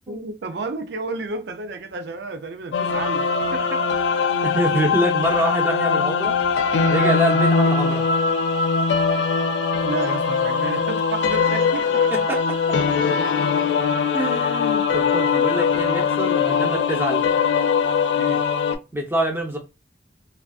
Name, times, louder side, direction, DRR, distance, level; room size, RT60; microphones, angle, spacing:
voice 1, 0.1-3.9 9.8-12.1 16.4-17.0 18.1-18.4, right 3 dB, 75° right, 0.4 m, -32 dB
sound 1, 2.7-18.8, left 5 dB, 85° left, 0.4 m, -21 dB
voice 2, 4.4-6.4 6.9-8.0 12.1-12.4 14.1-17.2 18.9-19.6, right 1 dB, 15° right, 0.5 m, -25 dB
2.4 x 2.4 x 2.3 m
head